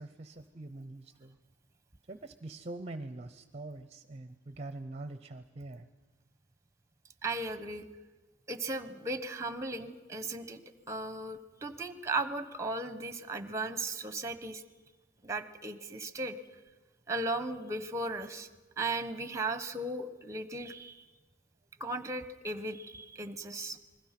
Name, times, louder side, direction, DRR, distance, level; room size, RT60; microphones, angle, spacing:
voice 1, 0.0-1.4 2.1-5.9, right 2 dB, 30° right, 11 dB, 0.6 m, -44 dB
voice 2, 7.2-7.8 8.5-10.6 10.9-14.6 15.2-16.4 17.1-18.5 18.8-21.0 21.8-23.8, right 2 dB, 15° right, 12 dB, 1.0 m, -36 dB
28.0 x 21.0 x 5.9 m, 1.2 s
head